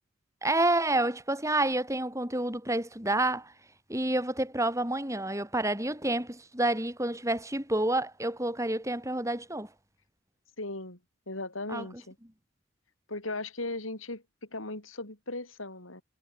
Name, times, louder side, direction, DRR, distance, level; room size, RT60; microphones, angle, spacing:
voice 1, 0.4-3.5 3.9-9.7 11.7-11.9, right 1 dB, 15° right, 7.9 m, -29 dB
voice 2, 10.6-11.0 11.3-12.2 13.1-14.2 14.5-16.0, left 2 dB, 85° left, 7.3 m, -37 dB
head